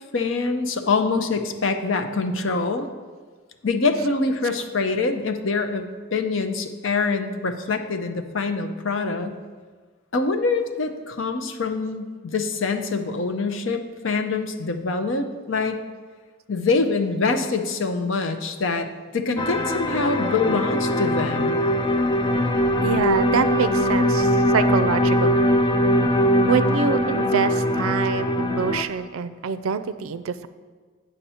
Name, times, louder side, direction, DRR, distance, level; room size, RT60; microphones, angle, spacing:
voice 1, 0.1-2.9 3.6-5.9 6.1-9.3 10.1-15.8 16.5-21.6, left 4 dB, 65° left, 7 dB, 0.7 m, -25 dB
sound 1, 19.4-28.8, equal, 20° left, 0.4 m, -21 dB
voice 2, 22.8-25.5 26.5-30.5, right 6 dB, 90° right, 13 dB, 0.4 m, -25 dB
8.7 x 6.9 x 4.3 m, 1.5 s
head